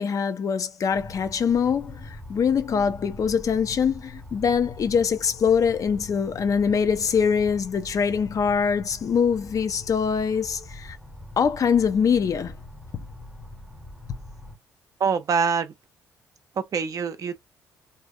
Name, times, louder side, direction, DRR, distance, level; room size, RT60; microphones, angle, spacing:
voice 1, 0.0-11.0 11.4-12.5 12.9-13.0, left 6 dB, 40° left, 0.6 m, -23 dB
sound 1, 0.9-14.6, left 1 dB, 5° right, 0.8 m, -43 dB
voice 2, 15.0-15.7 16.6-17.4, right 6 dB, 40° right, 0.6 m, -24 dB
3.4 x 2.7 x 2.4 m
figure-of-eight pair, 45°, 9 cm